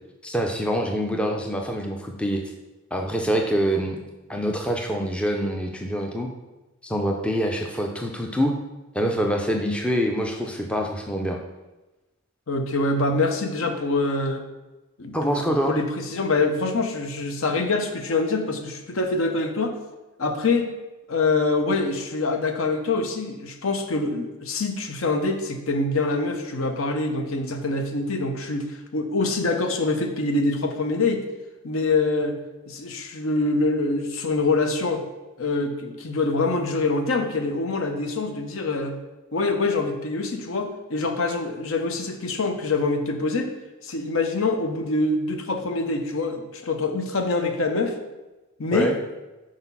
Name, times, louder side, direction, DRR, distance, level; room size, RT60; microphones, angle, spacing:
voice 1, 0.2-2.4 2.9-4.0 4.3-6.3 6.8-8.5 8.9-11.4 15.1-15.8 48.7-48.9, equal, 5° left, 2 dB, 0.4 m, -25 dB
voice 2, 12.5-14.4 15.0-19.7 20.2-20.7 21.1-31.2 31.6-32.4 32.7-35.0 35.4-39.0 39.3-43.5 43.8-48.0 48.6-48.9, left 3 dB, 65° left, 5 dB, 0.7 m, -25 dB
4.9 x 4.0 x 5.5 m, 1.1 s
head